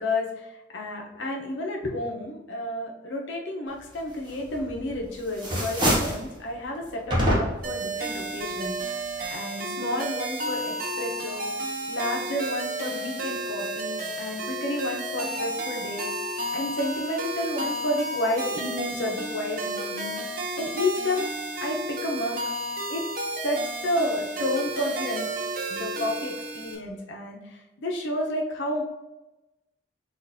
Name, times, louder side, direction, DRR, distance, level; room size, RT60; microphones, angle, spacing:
voice 1, 0.0-8.7 9.3-11.5 11.9-16.1 16.5-20.1 20.6-21.3 21.6-22.4 22.9-23.0 23.4-25.3 25.7-28.8, left 1 dB, 80° left, 0 dB, 0.9 m, -31 dB
sound 1, 4.5-5.0 5.3-6.3 7.1-7.8, equal, 25° right, 1.0 m, -25 dB
sound 2, 7.6-26.8, right 1 dB, 50° right, 0.7 m, -32 dB
6.5 x 2.6 x 2.7 m, 1.0 s
head